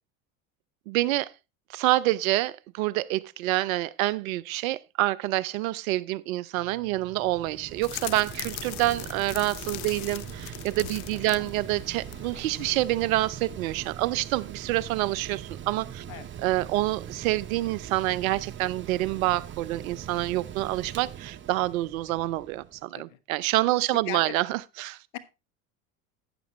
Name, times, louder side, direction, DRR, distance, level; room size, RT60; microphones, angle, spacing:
voice 1, 0.9-1.3 1.7-16.0 16.4-25.0, right 17 dB, 75° right, 0.7 m, -27 dB
Mechanical fan, 6.6-22.8, right 9 dB, 30° right, 0.8 m, -42 dB
sound 1, 7.8-12.9, left 24 dB, 60° left, 0.5 m, -40 dB
voice 2, 11.1-11.5 16.1-16.3 22.1-22.2 22.9-23.2 24.1-24.4 25.1-25.2, left 13 dB, 80° left, 1.2 m, -39 dB
12.0 x 8.8 x 3.0 m
hypercardioid pair, 85°, 41 cm